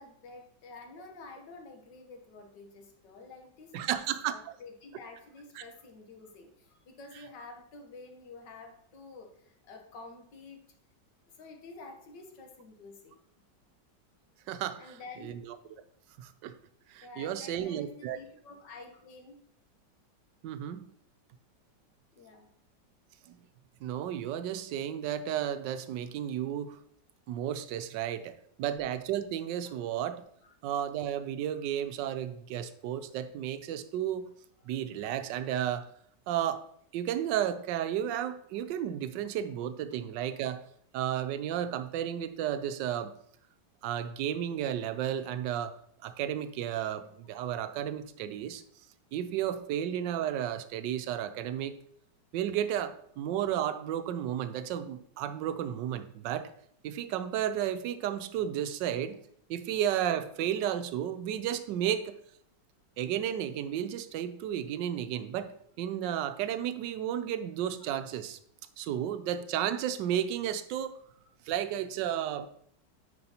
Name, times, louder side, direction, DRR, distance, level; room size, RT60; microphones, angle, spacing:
voice 1, 0.0-10.6 11.2-13.2 14.8-15.4 17.0-19.4 22.1-22.5 29.7-29.8 30.4-30.5, left 3 dB, 75° left, 3 dB, 1.7 m, -49 dB
voice 2, 3.7-4.4 5.6-5.7 14.5-14.9 16.2-16.5 16.9-18.2 20.4-20.8 23.3-23.4 23.8-26.8 27.3-30.2 30.6-34.3 34.7-35.9 36.3-36.7 36.9-40.6 40.9-43.1 43.8-45.8 46.0-48.6 49.1-51.7 52.3-56.5 56.8-59.2 59.5-62.1 63.0-65.5 65.8-68.4 68.8-70.9 71.5-72.5, right 10 dB, 80° right, 11 dB, 1.3 m, -33 dB
9.4 x 5.1 x 2.9 m, 0.66 s
omnidirectional pair, 1.9 m